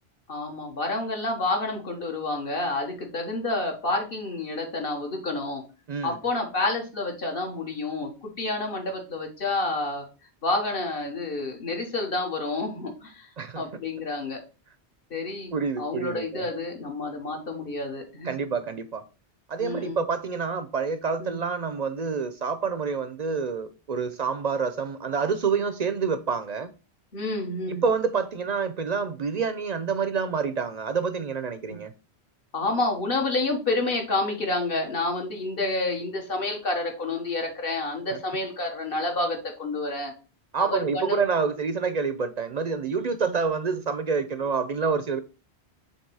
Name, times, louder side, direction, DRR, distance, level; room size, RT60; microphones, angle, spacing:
voice 1, 0.3-5.6 6.0-10.0 10.4-13.3 13.6-14.4 15.1-18.3 19.6-20.0 21.2-21.4 27.1-27.8 31.7-31.8 32.5-40.1 40.6-41.3 43.2-43.4, left 2 dB, 60° left, 1.5 m, -29 dB
voice 2, 15.5-16.5 18.2-19.0 19.5-26.7 27.7-31.9 38.1-38.2 40.5-45.2, right 5 dB, 50° right, 0.5 m, -27 dB
7.3 x 2.9 x 4.7 m
omnidirectional pair, 1.1 m